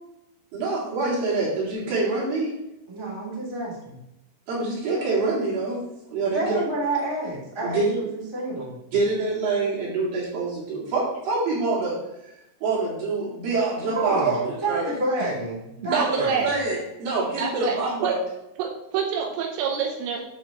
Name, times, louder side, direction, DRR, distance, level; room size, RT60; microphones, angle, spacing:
voice 1, 0.5-2.5 4.5-5.9 6.1-6.6 7.6-8.0 8.9-12.0 12.2-12.3 12.6-14.4 14.7-14.9 15.9-18.2, right 3 dB, 65° right, -8 dB, 4.5 m, -25 dB
voice 2, 2.9-4.0 6.2-7.8 8.1-8.8 13.9-16.5, right 2 dB, 10° right, -8 dB, 1.6 m, -29 dB
voice 3, 15.8-16.5 17.4-17.8 18.0-18.2 18.6-20.2, right 7 dB, 85° right, 1 dB, 3.4 m, -27 dB
9.4 x 6.6 x 3.0 m, 0.88 s
omnidirectional pair, 5.8 m